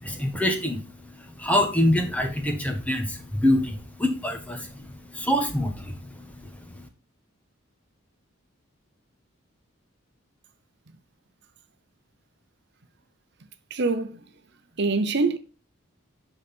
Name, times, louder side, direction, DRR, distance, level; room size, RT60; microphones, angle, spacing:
voice 1, 0.0-0.8 1.4-6.5, left 1 dB, 5° left, 1.4 m, -25 dB
voice 2, 13.7-14.2 14.8-15.4, right 3 dB, 55° right, 0.8 m, -24 dB
11.0 x 4.1 x 5.4 m
head